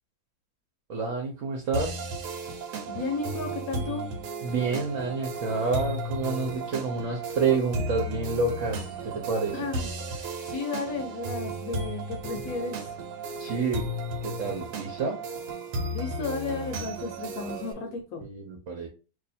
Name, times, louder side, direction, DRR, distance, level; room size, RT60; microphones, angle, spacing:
voice 1, 0.9-1.9 4.4-9.6 13.4-13.8 14.2-15.2 17.4-17.9 18.2-18.9, right 4 dB, 60° right, 1 dB, 1.1 m, -29 dB
sound 1, 1.7-17.7, right 2 dB, 85° right, 1.3 m, -34 dB
voice 2, 2.9-4.1 9.5-9.9 10.1-12.9 15.9-18.2, left 4 dB, 70° left, 3 dB, 1.1 m, -34 dB
2.7 x 2.5 x 4.1 m, 0.34 s
omnidirectional pair, 1.7 m